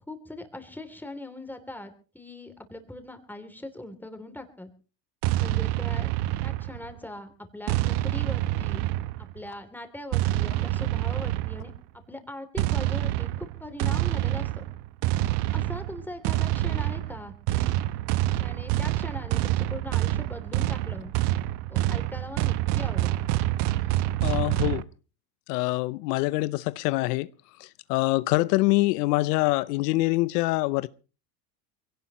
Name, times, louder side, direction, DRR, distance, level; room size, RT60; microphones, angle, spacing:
voice 1, 0.1-4.7 5.4-6.1 6.4-8.9 9.2-11.7 12.1-14.7 15.3-17.7 18.4-21.1 21.7-23.2, left 1 dB, 5° left, 2.8 m, -41 dB
sound 1, 5.2-7.0 7.7-9.4 10.1-11.8 12.6-24.8, right 15 dB, 60° right, 0.9 m, -27 dB
voice 2, 24.2-24.9 25.5-27.3 27.6-30.9, left 20 dB, 80° left, 0.7 m, -25 dB
22.5 x 17.0 x 3.0 m
supercardioid pair, 100°, 47 cm